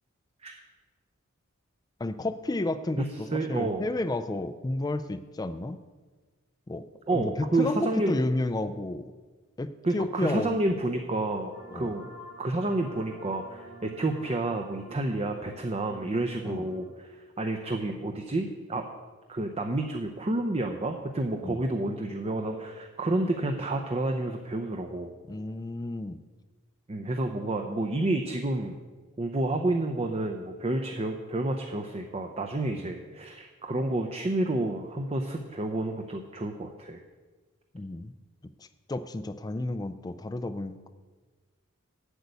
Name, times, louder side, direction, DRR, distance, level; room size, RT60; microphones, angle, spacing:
voice 1, 2.0-5.8 6.7-9.1 9.6-10.6 11.7-11.9 16.5-16.7 21.4-21.6 25.3-26.2 32.8-32.9 37.7-38.1 38.9-40.9, left 2 dB, 20° left, 11 dB, 0.4 m, -31 dB
voice 2, 3.0-3.9 7.1-8.2 9.8-12.0 12.4-18.8 19.3-25.1 26.9-28.8 29.2-37.0, right 2 dB, 30° right, 4 dB, 0.6 m, -30 dB
sound 1, 11.5-16.9, right 2 dB, 75° right, 1.6 m, -48 dB
8.1 x 6.6 x 8.2 m, 1.3 s
head